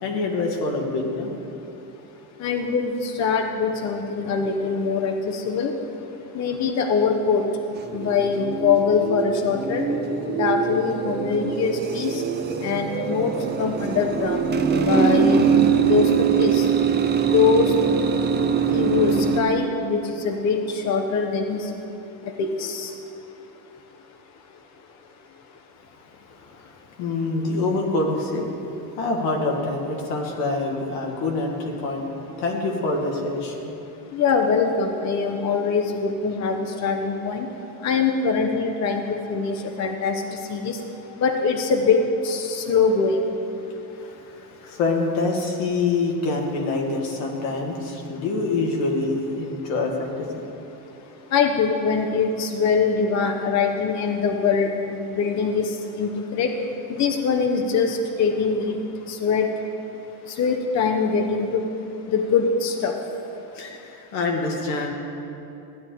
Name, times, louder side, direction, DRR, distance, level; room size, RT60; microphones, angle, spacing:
voice 1, 0.0-1.3 27.0-28.5 29.0-32.1 32.4-33.7 44.0-50.4 63.5-64.9, left 3 dB, 80° left, 0 dB, 2.0 m, -26 dB
voice 2, 2.4-5.7 6.3-7.5 7.9-9.9 10.3-12.2 12.6-14.4 14.9-15.4 15.8-16.7 17.3-17.8 18.7-21.7 22.4-22.9 34.1-37.5 37.8-40.8 41.2-43.3 51.3-54.7 55.0-56.5 56.9-58.8 59.1-59.6 60.3-61.7 62.1-63.0, left 5 dB, 35° left, 4 dB, 0.9 m, -23 dB
sound 1, 7.8-19.4, right 6 dB, 20° right, 0.6 m, -23 dB
14.5 x 8.7 x 3.8 m, 2.9 s
supercardioid pair, 110°, 49 cm